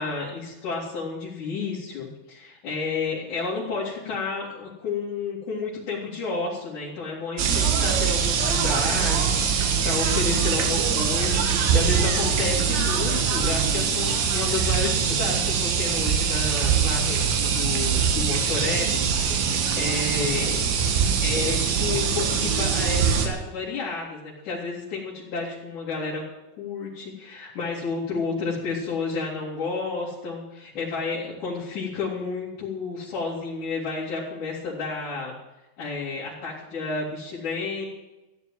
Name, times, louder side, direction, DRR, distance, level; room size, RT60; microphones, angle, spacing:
voice 1, 0.0-20.6 21.2-26.2 26.6-35.3 35.8-37.8, left 4 dB, 45° left, -7 dB, 4.0 m, -31 dB
sound 1, 7.4-15.5, left 3 dB, 80° left, 4.1 m, -39 dB
sound 2, 7.4-23.3, right 7 dB, 80° right, 4.0 m, -23 dB
15.0 x 10.5 x 7.6 m, 1.0 s
omnidirectional pair, 5.2 m